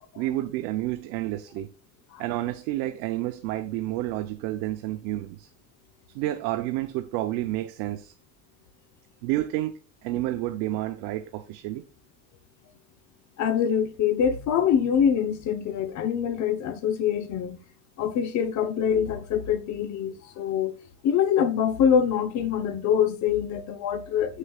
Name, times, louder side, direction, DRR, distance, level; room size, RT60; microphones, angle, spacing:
voice 1, 0.2-1.7 2.2-5.5 6.1-8.1 9.2-9.7 10.0-11.8, right 15 dB, 75° right, 0.7 m, -30 dB
voice 2, 13.4-17.6 18.0-20.7 21.0-24.4, left 8 dB, 50° left, 0.9 m, -24 dB
7.7 x 6.4 x 2.4 m
supercardioid pair, 110°, 37 cm